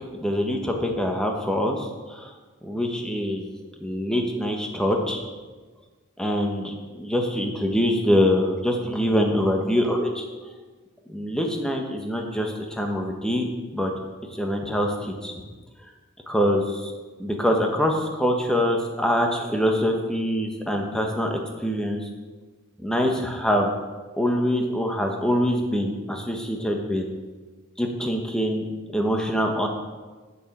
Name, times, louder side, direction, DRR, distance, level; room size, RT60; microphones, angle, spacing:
voice 1, 0.1-2.3 2.6-3.4 3.8-5.2 6.2-10.2 11.1-13.9 14.2-15.4 16.3-16.9 17.2-22.0 22.8-23.7 24.2-27.0 27.8-28.7 28.9-29.7, equal, 5° left, 2 dB, 1.1 m, -24 dB
8.3 x 7.1 x 7.2 m, 1.3 s
head